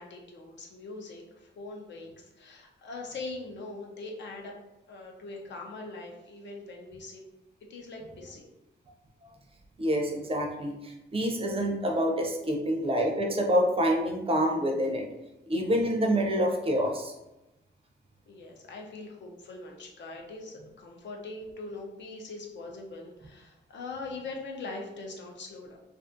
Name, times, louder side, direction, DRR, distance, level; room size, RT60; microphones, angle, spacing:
voice 1, 0.0-4.6 4.9-7.2 7.7-8.5 18.3-25.8, left 3 dB, 70° left, 0 dB, 0.6 m, -42 dB
voice 2, 9.8-15.1 15.5-17.1, equal, 30° right, 1 dB, 0.4 m, -27 dB
2.5 x 2.4 x 2.5 m, 0.96 s
wide cardioid pair, 115°, 19 cm